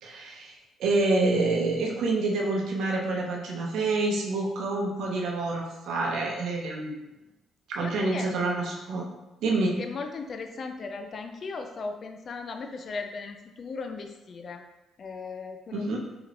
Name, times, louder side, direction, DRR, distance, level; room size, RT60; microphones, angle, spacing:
voice 1, 0.0-6.9 7.7-9.1 9.4-9.8 15.7-16.0, right 2 dB, 75° right, -1 dB, 0.8 m, -27 dB
voice 2, 7.8-8.3 9.8-14.6 15.0-16.0, left 4 dB, 50° left, 6 dB, 0.4 m, -37 dB
4.8 x 3.0 x 2.5 m, 1.0 s
supercardioid pair, 60°, 0 cm